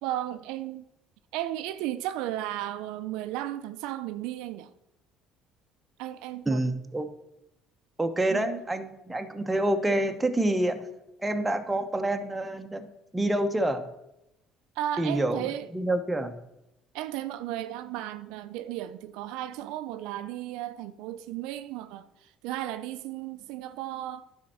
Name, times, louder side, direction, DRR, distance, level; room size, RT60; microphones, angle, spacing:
voice 1, 0.0-0.9 1.3-4.7 6.0-6.6 8.3-8.5 14.8-15.7 16.9-24.2, right 13 dB, 80° right, 0.4 m, -34 dB
voice 2, 6.5-7.1 8.0-10.9 11.2-13.9 15.0-16.4, right 1 dB, 10° right, 0.9 m, -27 dB
10.5 x 4.4 x 6.2 m
supercardioid pair, 95°, 0 cm